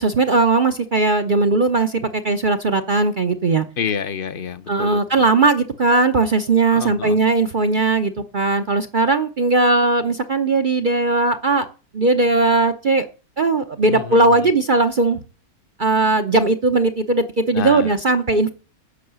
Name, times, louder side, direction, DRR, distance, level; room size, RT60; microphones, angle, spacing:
voice 1, 0.0-3.7 4.7-11.7 11.9-13.1 13.4-15.2 15.8-18.5, right 3 dB, 40° right, 0.8 m, -18 dB
voice 2, 3.8-5.3 6.7-7.2 13.8-14.5 17.5-18.0, left 7 dB, 45° left, 0.8 m, -28 dB
10.5 x 6.5 x 8.0 m
omnidirectional pair, 1.6 m